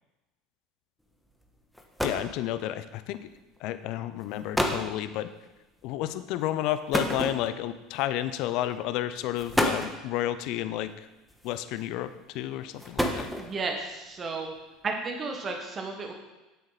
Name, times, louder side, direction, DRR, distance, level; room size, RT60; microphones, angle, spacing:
sound 1, 1.4-1.5 1.7-2.4 3.4-3.6 4.2-4.3 4.5-4.9 6.9-7.8 8.7-8.9 9.4-10.0 11.3-11.8 12.6-13.7, equal, ahead, 1.4 m, -29 dB
voice 1, 2.0-3.3 3.6-5.3 5.8-10.9 11.4-13.3, left 13 dB, 65° left, 12 dB, 0.6 m, -31 dB
voice 2, 13.3-14.5 14.8-16.1, right 3 dB, 35° right, 3 dB, 1.5 m, -33 dB
9.3 x 8.1 x 4.1 m, 1.1 s
hypercardioid pair, 80°, 0 cm